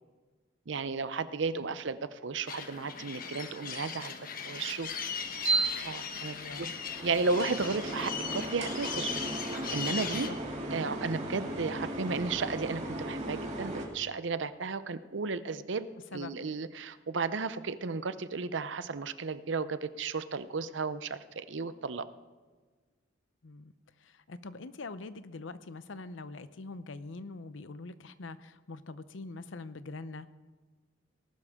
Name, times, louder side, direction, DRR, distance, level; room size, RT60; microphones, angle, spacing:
voice 1, 0.7-4.1 4.4-4.9 5.8-6.3 7.0-9.1 9.7-10.3 10.7-22.1, right 4 dB, 70° right, 13 dB, 0.7 m, -34 dB
sound 1, 2.5-10.3, left 6 dB, 50° left, 1.2 m, -39 dB
sound 2, 4.8-13.9, right 2 dB, 40° right, 2.7 m, -36 dB
voice 2, 6.3-6.7 10.1-10.4 16.1-16.4 23.4-23.7 24.0-30.3, left 3 dB, 85° left, 13 dB, 0.7 m, -44 dB
19.0 x 12.0 x 3.7 m, 1.4 s
head